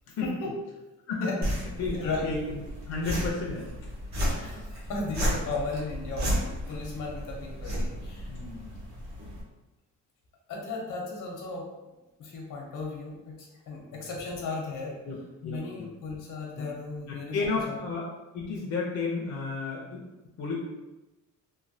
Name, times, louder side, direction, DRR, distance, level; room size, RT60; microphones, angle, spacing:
voice 1, 0.2-0.5 1.2-1.4 1.9-2.3 4.3-8.3 10.5-11.7 12.2-15.0 15.4-17.4 17.7-17.8, left 3 dB, 80° left, -2 dB, 0.9 m, -35 dB
voice 2, 1.1-1.5 1.8-1.9 2.2-3.7 8.3-8.7 13.9-14.0 15.0-15.2 15.4-15.9 16.6-16.7 17.1-18.1 18.3-20.1 20.4-20.5, left 4 dB, 55° left, -3 dB, 0.6 m, -32 dB
sound 1, 1.4-9.4, equal, 60° right, 0.9 m, -33 dB
3.1 x 2.2 x 2.7 m, 1.0 s
cardioid pair, 165°, 31 cm